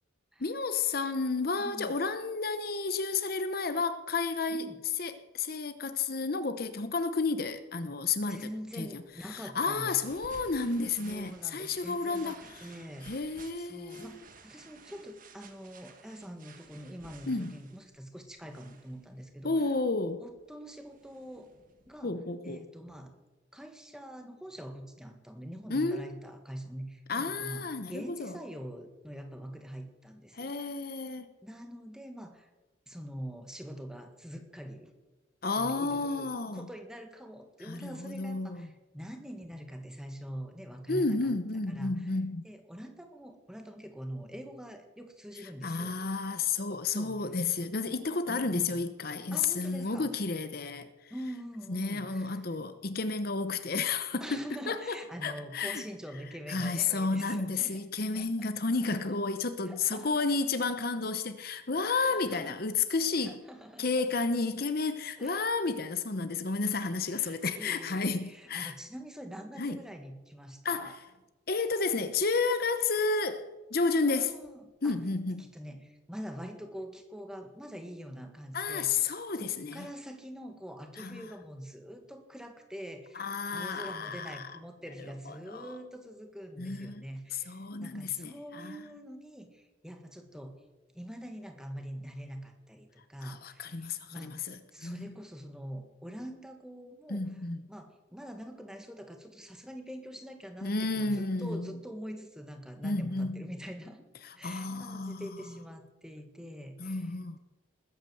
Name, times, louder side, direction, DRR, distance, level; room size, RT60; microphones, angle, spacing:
voice 1, 0.4-4.7 5.0-8.5 8.7-12.7 13.0-14.1 17.3-17.6 19.4-20.2 22.0-22.6 25.7-26.1 27.1-28.3 30.3-31.3 35.4-36.7 37.6-38.7 40.9-42.5 45.6-51.1 51.7-55.9 56.5-63.4 63.8-68.7 69.6-69.8 70.6-71.1 71.5-74.3 74.8-75.5 78.5-79.9 81.0-81.3 83.1-84.5 85.3-85.7 86.6-87.0 87.3-88.8 93.2-95.2 97.1-97.7 100.6-101.7 102.8-103.5 104.2-105.3 106.8-107.4, left 4 dB, 50° left, 0.8 m, -32 dB
voice 2, 1.6-1.9 4.5-4.8 8.3-10.0 11.0-19.6 20.2-21.5 21.9-22.1 22.4-23.1 23.5-30.5 31.4-32.5 32.9-34.9 35.6-41.3 41.7-42.1 42.4-46.0 46.9-47.2 48.3-48.8 49.3-50.1 51.1-52.4 54.2-57.8 58.1-58.7 59.7-60.2 62.0-62.6 63.2-63.9 65.2-65.4 67.1-70.9 74.1-75.0 75.4-78.9 79.3-90.6 90.9-97.2 97.7-104.1 104.4-107.1, equal, 5° right, 1.6 m, -44 dB
sound 1, 8.4-22.1, right 4 dB, 40° right, 1.5 m, -56 dB
20.0 x 8.9 x 7.8 m
head